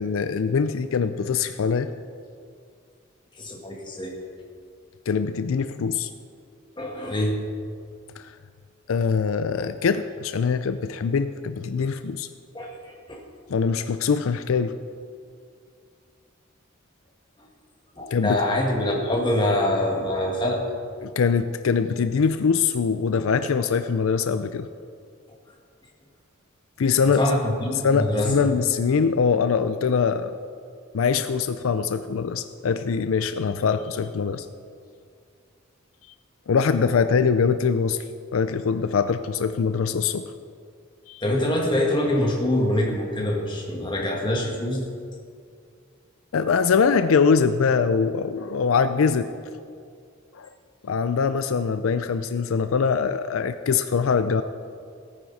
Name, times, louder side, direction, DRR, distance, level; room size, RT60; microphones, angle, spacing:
voice 1, 0.0-1.9 5.1-6.1 8.2-8.3 8.9-12.3 13.5-14.8 18.1-18.4 21.0-24.7 26.8-27.2 27.8-30.4 30.9-34.5 36.5-38.0 38.3-40.3 41.1-41.2 46.3-49.3 50.3-50.5 50.8-54.4, left 5 dB, 75° left, 11 dB, 0.4 m, -23 dB
voice 2, 3.4-4.1 6.8-7.4 12.5-13.2 18.0-20.6 27.0-28.5 41.2-44.8, left 1 dB, 20° left, -1 dB, 1.8 m, -24 dB
17.0 x 9.6 x 4.1 m, 2.3 s
head